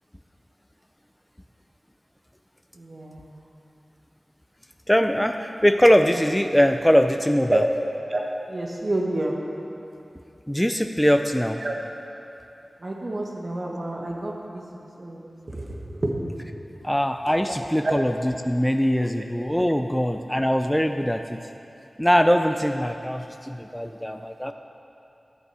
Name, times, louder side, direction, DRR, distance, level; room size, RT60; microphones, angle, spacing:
voice 1, 2.8-3.3 7.5-7.6 8.1-8.2 8.5-9.4 11.6-11.7 12.8-16.1 17.8-18.0, right 2 dB, 55° right, 0 dB, 1.4 m, -29 dB
voice 2, 4.9-7.6 10.5-11.6 16.8-21.4 22.0-24.5, equal, 5° left, 6 dB, 0.4 m, -22 dB
13.0 x 7.7 x 4.9 m, 2.8 s
wide cardioid pair, 55°, 0 cm